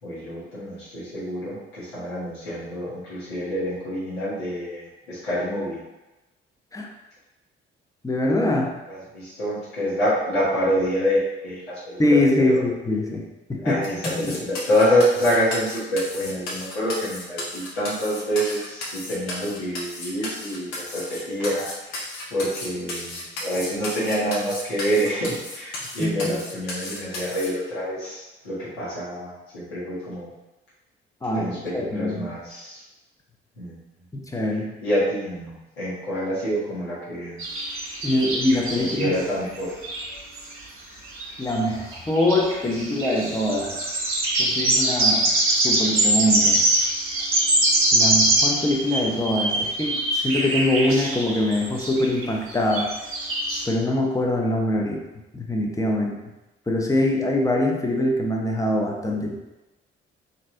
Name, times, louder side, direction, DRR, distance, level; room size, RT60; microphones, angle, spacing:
voice 1, 0.0-5.8 8.9-12.0 12.5-12.6 13.6-21.9 22.3-30.3 31.3-32.8 33.6-33.7 34.8-37.4 38.8-39.7, equal, 80° left, -10 dB, 1.2 m, -26 dB
voice 2, 8.0-8.7 12.0-14.4 26.0-26.4 31.2-32.3 34.1-34.7 38.0-39.2 41.4-43.9 44.4-46.6 47.9-52.9 53.7-55.0 55.3-56.2 56.7-59.4, left 1 dB, 10° left, 0 dB, 0.6 m, -23 dB
sound 1, 13.8-27.5, left 2 dB, 65° left, 0.8 m, -34 dB
sound 2, 37.4-39.2 39.5-39.6 39.8-40.1 40.4-40.5 41.1-41.5 41.9-53.6, right 1 dB, 40° right, 1.0 m, -23 dB
3.1 x 2.7 x 2.6 m, 1.0 s
figure-of-eight pair, 40°, 31 cm